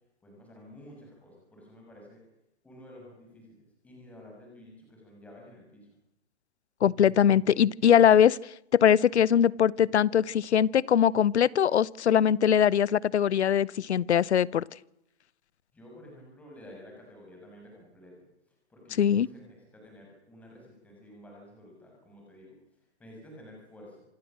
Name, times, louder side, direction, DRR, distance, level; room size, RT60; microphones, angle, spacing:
voice 1, 0.2-2.2 2.6-5.9 15.7-24.0, left 1 dB, 5° left, -1 dB, 6.5 m, -51 dB
voice 2, 6.8-8.4 8.7-14.6 19.0-19.3, left 9 dB, 75° left, 23 dB, 0.9 m, -22 dB
27.0 x 16.0 x 7.5 m, 0.84 s
hypercardioid pair, 170°, 34 cm